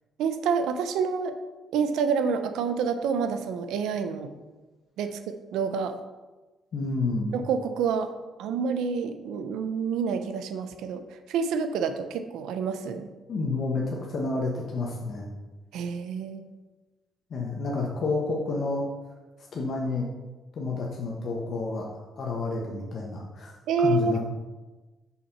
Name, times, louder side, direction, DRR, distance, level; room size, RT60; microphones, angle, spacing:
voice 1, 0.2-1.4 1.7-4.3 5.0-6.0 7.3-8.1 8.4-11.0 11.3-13.1 15.7-16.4 23.7-24.2, right 5 dB, 85° right, 9 dB, 0.5 m, -28 dB
voice 2, 6.7-7.4 13.3-15.3 17.3-18.9 19.5-20.1 20.6-23.5 23.8-24.2, left 3 dB, 55° left, -2 dB, 1.1 m, -29 dB
5.7 x 4.2 x 5.8 m, 1.2 s
cardioid pair, 90°, 0 cm